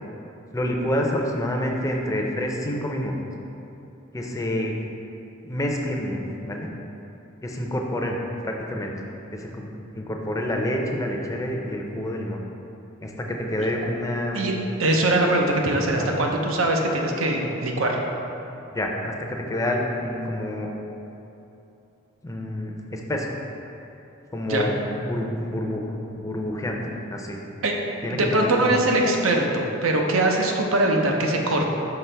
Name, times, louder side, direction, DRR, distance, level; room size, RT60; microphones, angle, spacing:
voice 1, 0.5-3.1 4.1-4.8 5.4-6.7 7.4-8.2 8.4-8.9 9.3-9.7 9.9-12.4 13.0-14.4 15.9-16.1 18.7-20.7 22.2-23.3 24.3-27.4 28.0-28.7, left 1 dB, 15° left, 0 dB, 0.5 m, -28 dB
voice 2, 14.8-18.0 24.5-24.7 27.6-27.7 28.1-31.6, right 1 dB, 85° right, 1 dB, 0.7 m, -22 dB
5.8 x 4.8 x 3.4 m, 2.9 s
head